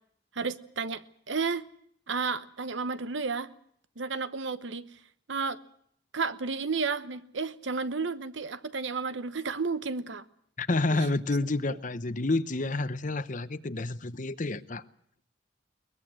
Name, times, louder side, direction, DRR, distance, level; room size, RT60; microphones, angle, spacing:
voice 1, 0.3-1.7 2.1-3.5 4.0-4.8 5.3-5.6 6.1-10.2 10.9-11.1 11.7-11.8, right 4 dB, 75° right, 1.0 m, -32 dB
voice 2, 10.6-14.8, left 2 dB, 40° left, 0.9 m, -29 dB
22.0 x 20.5 x 7.7 m
head